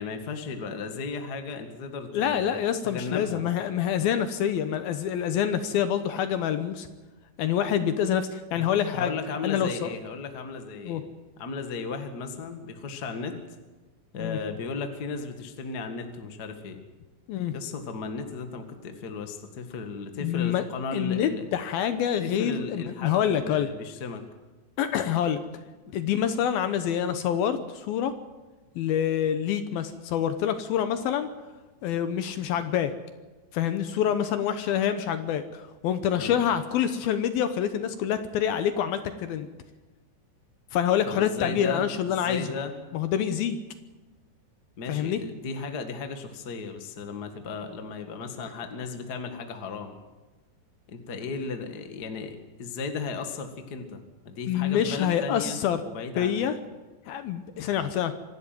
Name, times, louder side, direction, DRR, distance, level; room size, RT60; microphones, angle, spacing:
voice 1, 0.0-2.6 2.8-3.4 8.5-8.7 8.9-11.0 11.4-13.4 14.1-16.8 17.5-21.5 22.2-24.2 25.9-26.0 36.2-36.4 41.1-42.7 44.8-50.0 50.9-54.0 54.2-55.6 55.8-56.5, left 4 dB, 50° left, 6 dB, 1.1 m, -35 dB
voice 2, 2.1-6.9 7.4-9.1 9.4-9.9 10.8-11.0 14.2-14.4 17.3-17.5 20.2-20.6 20.9-23.7 24.8-25.4 25.9-28.1 28.8-31.3 31.8-32.9 33.5-39.5 40.7-42.5 42.9-43.6 44.9-45.2 54.5-55.8 56.2-56.5 57.1-58.1, left 9 dB, 70° left, 10 dB, 2.5 m, -26 dB
25.5 x 11.5 x 9.1 m, 1.2 s
omnidirectional pair, 5.0 m